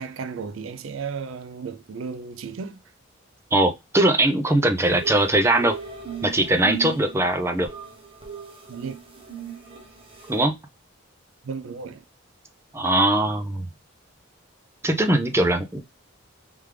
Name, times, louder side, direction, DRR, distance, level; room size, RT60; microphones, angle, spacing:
voice 1, 0.0-2.8 8.7-8.9 11.4-12.0, right 5 dB, 85° right, 0.4 m, -34 dB
voice 2, 3.5-5.7 6.2-7.7 10.3-10.5 12.7-13.7 14.8-15.8, right 1 dB, 15° right, 0.4 m, -21 dB
sound 1, 4.8-10.4, right 7 dB, 30° right, 0.9 m, -37 dB
3.4 x 3.3 x 3.2 m
head